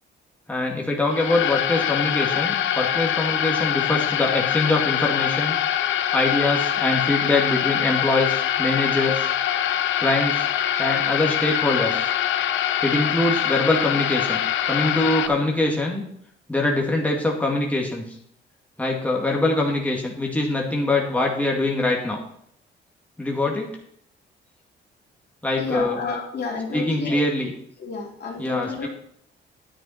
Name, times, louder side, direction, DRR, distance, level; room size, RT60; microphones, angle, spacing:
voice 1, 0.5-5.6 6.1-9.3 10.0-10.5 10.8-12.1 12.8-14.4 14.7-16.0 16.5-18.2 18.8-22.2 23.2-23.7 25.4-26.0 26.7-27.5 28.4-28.9, left 2 dB, 5° left, -1 dB, 2.1 m, -23 dB
sound 1, 1.1-15.3, left 10 dB, 75° left, 0.7 m, -24 dB
voice 2, 25.6-27.2 27.8-28.9, left 4 dB, 55° left, -1 dB, 3.0 m, -30 dB
10.0 x 8.9 x 4.3 m, 0.67 s
cardioid pair, 90°, 20 cm